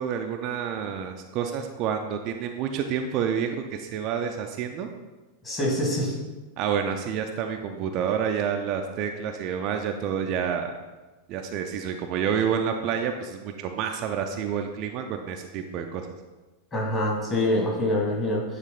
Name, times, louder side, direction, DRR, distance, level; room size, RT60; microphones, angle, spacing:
voice 1, 0.0-4.9 6.6-10.7 11.3-16.1, right 7 dB, 40° right, 4 dB, 0.4 m, -29 dB
voice 2, 5.4-6.2 16.7-18.4, left 1 dB, 25° left, -3 dB, 2.0 m, -25 dB
9.0 x 3.2 x 3.8 m, 1.2 s
figure-of-eight pair, 90°, 0 cm